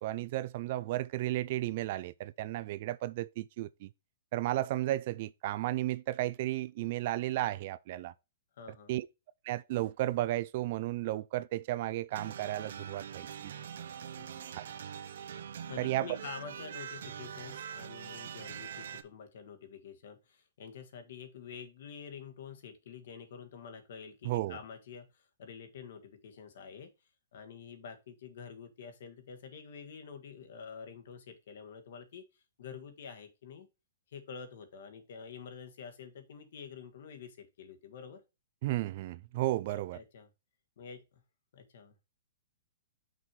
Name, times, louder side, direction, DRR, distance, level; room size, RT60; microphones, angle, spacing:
voice 1, 0.0-3.9 4.3-8.1 8.9-9.1 9.4-13.5 14.6-14.7 15.8-16.1 24.2-24.6 38.6-40.0, right 16 dB, 35° right, 0.3 m, -33 dB
voice 2, 8.6-8.9 14.2-14.6 15.5-26.9 27.3-32.2 32.6-33.7 34.1-38.2 39.7-40.3 40.8-41.2 41.5-41.9, left 6 dB, 55° left, 1.5 m, -48 dB
sound 1, 12.1-19.0, right 8 dB, 60° right, 0.7 m, -43 dB
6.0 x 4.5 x 4.7 m
hypercardioid pair, 170°, 0 cm